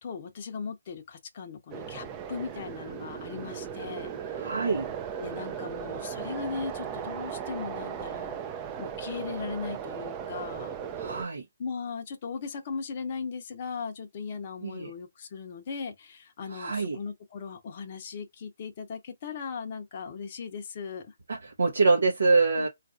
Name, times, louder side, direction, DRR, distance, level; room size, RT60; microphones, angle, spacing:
voice 1, 0.0-4.4 5.2-8.4 8.8-10.7 11.6-21.1 22.6-22.7, left 5 dB, 40° left, 0.7 m, -38 dB
sound 1, 1.7-11.3, right 8 dB, 20° right, 0.4 m, -37 dB
voice 2, 4.4-4.9 11.0-11.4 14.6-14.9 16.5-17.0 21.3-22.7, right 3 dB, 70° right, 0.7 m, -25 dB
3.9 x 2.5 x 2.4 m
figure-of-eight pair, 145°, 0 cm